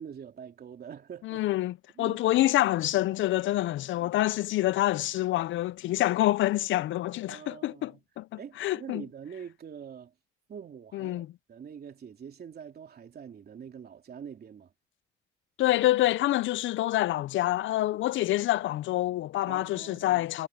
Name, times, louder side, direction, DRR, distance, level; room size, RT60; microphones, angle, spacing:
voice 1, 0.0-1.4 1.9-2.2 4.0-4.1 7.3-8.0 8.4-10.1 10.5-14.7 19.5-20.3, right 7 dB, 50° right, 3.3 m, -45 dB
voice 2, 1.2-9.0 10.9-11.3 15.6-20.5, left 15 dB, 75° left, 0.6 m, -27 dB
cardioid pair, 90°, 20 cm